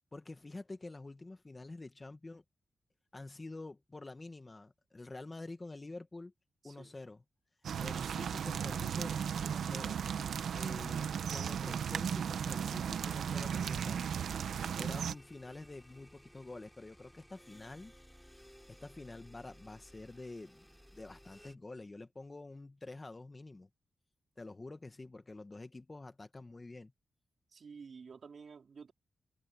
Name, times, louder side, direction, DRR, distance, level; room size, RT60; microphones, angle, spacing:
voice 1, 0.1-2.4 3.1-6.3 6.6-7.2 7.8-10.0 10.5-14.0 14.7-17.9 18.7-23.7 24.4-26.9, left 2 dB, 25° left, 1.5 m, -48 dB
voice 2, 6.6-6.9 27.5-28.9, right 5 dB, 55° right, 4.2 m, -51 dB
sound 1, 7.6-15.1, right 8 dB, 90° right, 0.8 m, -36 dB
sound 2, 12.7-21.6, equal, ahead, 6.2 m, -59 dB
wide cardioid pair, 115°, 0 cm